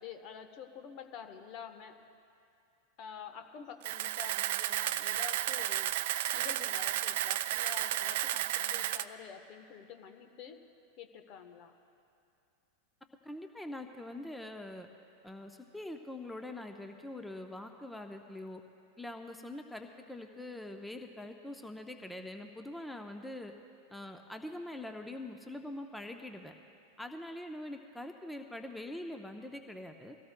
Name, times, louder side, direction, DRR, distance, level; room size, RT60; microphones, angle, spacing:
voice 1, 0.0-2.0 3.0-10.7 11.0-11.7, left 7 dB, 50° left, 7 dB, 1.1 m, -48 dB
Camera, 3.8-9.0, right 14 dB, 60° right, 0.3 m, -33 dB
voice 2, 13.2-14.9 15.2-18.6 19.0-23.5 23.9-26.5 27.0-30.2, left 1 dB, 5° left, 5 dB, 0.8 m, -44 dB
23.5 x 17.0 x 2.3 m, 2.5 s
figure-of-eight pair, 90°, 0 cm